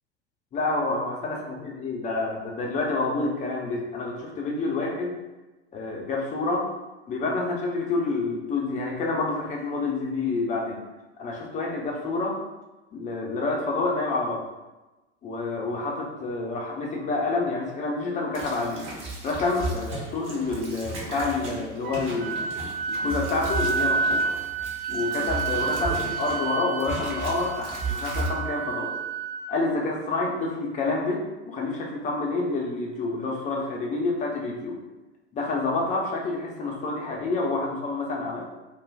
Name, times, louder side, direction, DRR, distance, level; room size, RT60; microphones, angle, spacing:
voice 1, 0.5-5.1 5.7-6.7 7.1-10.8 11.2-12.4 12.9-14.4 15.2-18.8 19.2-22.5 22.9-24.3 24.9-28.9 29.5-34.8 35.3-38.4, left 3 dB, 20° left, -1 dB, 0.5 m, -28 dB
sound 1, 18.3-26.5 26.8-28.3, right 2 dB, 35° right, 0.8 m, -35 dB
Wind instrument woodwind instrument, 21.8-29.6, right 5 dB, 60° right, 0.5 m, -30 dB
2.3 x 2.2 x 3.2 m, 1.1 s
figure-of-eight pair, 85°, 35 cm